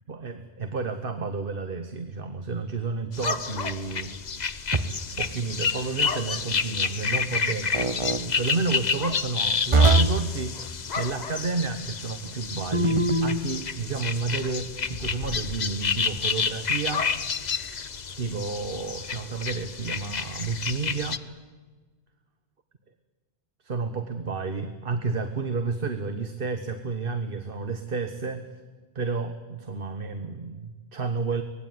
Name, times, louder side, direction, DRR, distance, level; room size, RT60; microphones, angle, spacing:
voice 1, 0.1-4.1 5.2-17.1 18.2-21.2 23.6-28.4 28.9-31.4, right 4 dB, 55° right, 8 dB, 1.4 m, -31 dB
sound 1, 3.1-21.2, left 5 dB, 40° left, 0.9 m, -30 dB
sound 2, 4.7-5.2 7.7-8.2 9.7-10.3 12.7-13.4, right 2 dB, 30° right, 1.1 m, -22 dB
25.0 x 19.0 x 9.4 m, 1.3 s
omnidirectional pair, 1.1 m